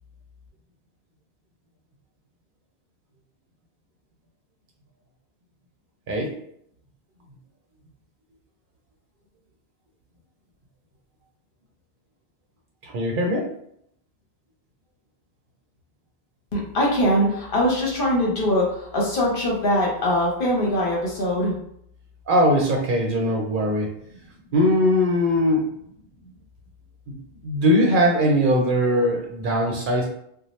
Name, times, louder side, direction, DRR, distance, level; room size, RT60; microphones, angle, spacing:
voice 1, 12.8-13.5 22.3-23.9 24.5-25.7 27.1-30.1, equal, 60° right, 0 dB, 0.7 m, -21 dB
voice 2, 16.5-21.6, equal, 60° left, -3 dB, 1.0 m, -22 dB
2.7 x 2.1 x 3.0 m, 0.71 s
omnidirectional pair, 1.0 m